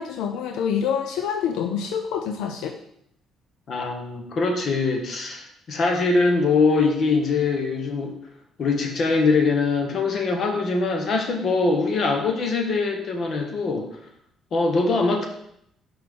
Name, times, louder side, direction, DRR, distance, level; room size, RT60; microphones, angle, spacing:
voice 1, 0.0-2.8, left 7 dB, 85° left, 6 dB, 0.4 m, -26 dB
voice 2, 3.7-8.1 8.6-13.9 14.5-15.3, left 3 dB, 50° left, 3 dB, 1.2 m, -22 dB
5.8 x 5.2 x 3.7 m, 0.73 s
cardioid pair, 110°, 0 cm